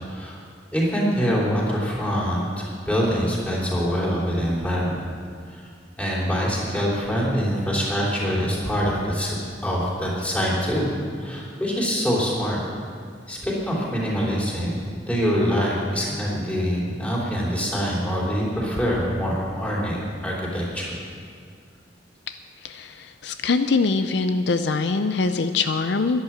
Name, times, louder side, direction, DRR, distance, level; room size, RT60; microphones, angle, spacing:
voice 1, 0.1-0.4 0.7-5.1 5.5-5.7 6.0-10.9 11.2-12.6 13.3-20.9, equal, 10° left, -5 dB, 3.3 m, -24 dB
voice 2, 22.6-26.2, left 4 dB, 70° left, 9 dB, 0.5 m, -23 dB
11.5 x 10.5 x 7.4 m, 2.2 s
head